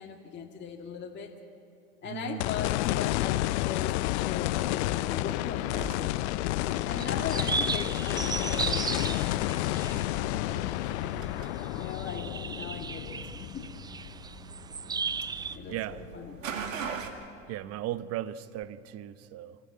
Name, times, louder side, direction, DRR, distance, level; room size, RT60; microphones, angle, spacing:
voice 1, 0.0-1.3 2.0-11.1 11.5-13.7 15.5-16.4, left 6 dB, 25° left, 2.0 m, -40 dB
voice 2, 2.1-2.4 13.2-13.3 15.7-16.0 17.5-19.6, right 13 dB, 40° right, 0.9 m, -37 dB
sound 1, 2.4-14.7 15.2-15.3 18.6-18.7, left 19 dB, 60° left, 0.5 m, -30 dB
sound 2, 5.7-17.1, right 5 dB, 80° right, 2.1 m, -43 dB
sound 3, 6.7-15.6, right 5 dB, 10° right, 0.4 m, -36 dB
26.0 x 15.0 x 8.4 m
hypercardioid pair, 90°, 39 cm